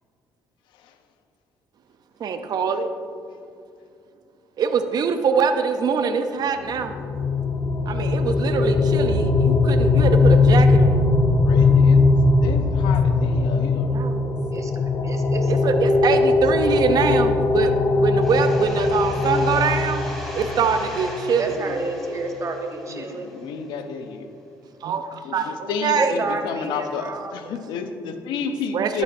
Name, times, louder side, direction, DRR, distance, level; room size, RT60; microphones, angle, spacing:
voice 1, 2.2-2.9 4.6-7.0 7.9-11.1 13.1-13.2 13.9-14.3 15.5-17.7 18.0-20.0 20.3-21.8 24.8-26.2 28.7-29.0, right 5 dB, 60° right, 8 dB, 0.5 m, -24 dB
sound 1, 6.7-21.5, left 3 dB, 45° left, 0.6 m, -20 dB
voice 2, 11.4-12.1 12.4-13.9 22.9-24.3 25.2-29.0, left 5 dB, 90° left, 7 dB, 0.6 m, -31 dB
voice 3, 15.0-15.5 21.4-23.3 26.0-27.6, right 3 dB, 40° right, 4 dB, 1.0 m, -30 dB
sound 2, 18.2-23.7, equal, 5° left, 2.1 m, -40 dB
11.5 x 7.1 x 2.6 m, 2.4 s
cardioid pair, 80°, 8 cm